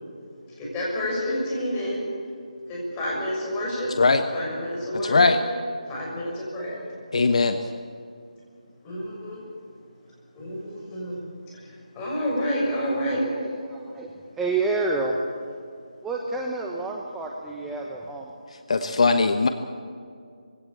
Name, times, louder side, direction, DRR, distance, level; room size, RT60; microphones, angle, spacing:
voice 1, 0.5-2.0 2.7-3.9 4.3-5.3 5.9-6.8 8.8-9.4 10.3-11.2 11.5-13.2, equal, 15° left, -4 dB, 6.5 m, -29 dB
voice 2, 5.0-5.4 7.1-7.6 18.7-19.5, left 3 dB, 55° left, 8 dB, 1.2 m, -19 dB
voice 3, 12.9-15.2 16.0-18.3, right 3 dB, 5° right, -1 dB, 1.0 m, -29 dB
21.5 x 17.0 x 8.6 m, 2.2 s
figure-of-eight pair, 160°, 4 cm